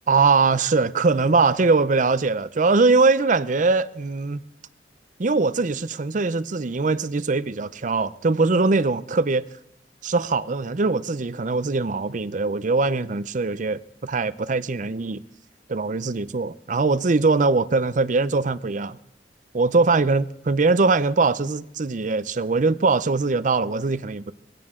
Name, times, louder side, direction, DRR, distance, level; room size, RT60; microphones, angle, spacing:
voice 1, 0.1-4.4 5.2-9.4 10.0-15.2 15.7-19.0 19.5-24.3, right 3 dB, 45° right, 0.6 m, -21 dB
22.0 x 17.0 x 3.7 m
head